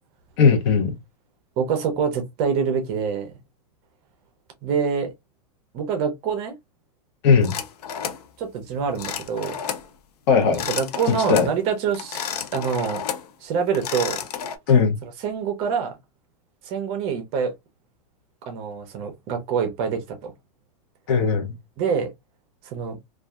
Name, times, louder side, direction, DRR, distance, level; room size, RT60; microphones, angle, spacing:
voice 1, 0.4-0.9 7.2-7.6 10.3-10.7 11.3-11.5 14.7-15.0 21.1-21.5, left 5 dB, 45° left, 0.8 m, -18 dB
voice 2, 1.6-3.3 4.6-5.1 5.7-6.6 8.4-9.6 10.7-13.0 13.4-14.2 15.0-16.0 16.6-17.5 18.5-20.3 21.8-22.1 22.7-23.0, right 6 dB, 30° right, 0.6 m, -26 dB
sound 1, 7.4-8.3 9.0-9.9 10.4-11.5 11.9-13.3 13.7-14.6, left 8 dB, 80° left, 0.6 m, -31 dB
2.6 x 2.3 x 2.3 m
supercardioid pair, 160°, 20 cm